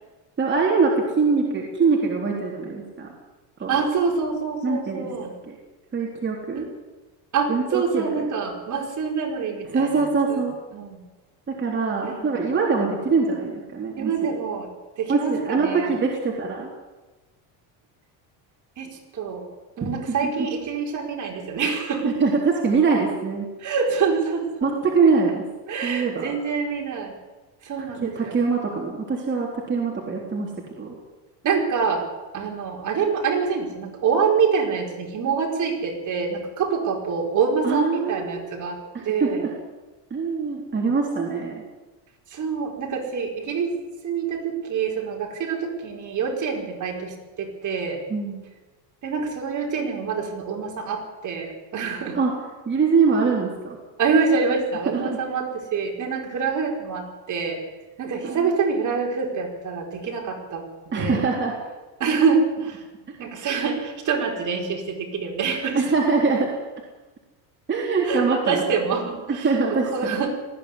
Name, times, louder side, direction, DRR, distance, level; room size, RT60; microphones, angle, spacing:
voice 1, 0.4-3.1 3.6-3.8 4.6-5.1 5.5-5.6 5.9-6.6 7.5-8.3 9.7-10.5 11.5-14.3 15.1-16.7 19.8-19.9 20.2-20.3 22.2-23.5 24.6-25.4 25.8-26.3 28.0-30.5 30.8-31.0 37.6-38.4 38.9-39.5 40.1-41.6 48.1-48.4 52.1-52.3 52.7-53.8 54.9-55.2 58.2-58.5 60.9-61.5 65.7-66.5 67.7-68.6 69.3-70.2, right 4 dB, 25° right, -2 dB, 3.7 m, -23 dB
voice 2, 3.7-5.3 6.5-6.6 7.3-10.4 10.7-11.0 12.0-12.2 14.0-14.7 15.0-16.0 18.8-19.5 19.8-22.2 23.6-24.7 25.7-27.1 27.6-28.3 31.4-32.0 32.3-38.8 39.0-39.5 42.3-43.7 44.0-48.0 49.0-52.2 54.0-57.6 58.0-60.6 61.0-61.2 62.0-62.8 63.2-66.1 68.0-70.4, right 5 dB, 40° right, 1 dB, 4.8 m, -26 dB
19.5 x 15.0 x 9.9 m, 1.2 s
cardioid pair, 145°, 45 cm